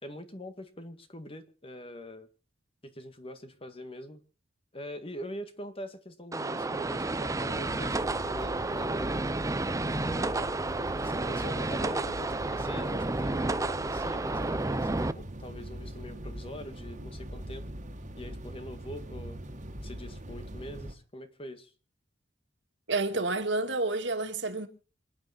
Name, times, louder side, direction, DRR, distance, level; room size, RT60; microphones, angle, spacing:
voice 1, 0.0-2.3 2.8-4.2 4.7-9.1 10.0-17.6 18.2-19.4 19.8-21.7, equal, 30° left, 1.9 m, -43 dB
sound 1, 6.3-15.1, right 2 dB, 20° right, 0.6 m, -31 dB
sound 2, 7.5-20.9, right 1 dB, 40° right, 2.1 m, -41 dB
voice 2, 22.9-24.7, right 3 dB, 70° right, 2.3 m, -29 dB
27.0 x 9.6 x 4.4 m
head